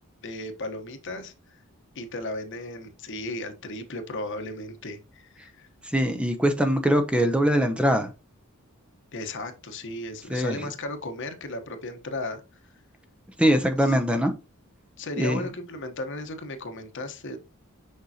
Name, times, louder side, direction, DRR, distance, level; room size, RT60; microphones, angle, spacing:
voice 1, 0.2-1.6 1.9-5.7 9.1-12.4 13.8-13.9 15.0-17.4, left 2 dB, 55° left, 1.1 m, -35 dB
voice 2, 5.9-8.1 10.3-10.6 13.4-14.3 15.2-15.5, equal, 5° right, 0.7 m, -22 dB
6.6 x 5.4 x 2.8 m
head